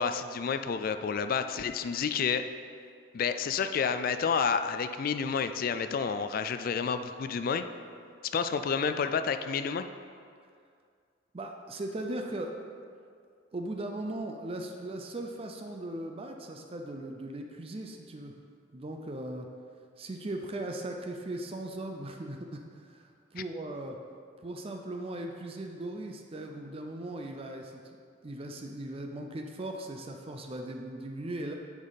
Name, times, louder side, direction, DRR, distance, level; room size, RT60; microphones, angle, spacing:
voice 1, 0.0-2.4 3.1-7.6 8.2-9.9 23.4-23.5, left 6 dB, 45° left, 10 dB, 0.3 m, -30 dB
voice 2, 11.3-12.6 13.5-18.3 18.7-19.5 20.0-24.0 24.4-28.0 28.2-31.5, right 1 dB, 30° right, 3 dB, 0.4 m, -38 dB
9.4 x 5.1 x 4.0 m, 2.3 s
head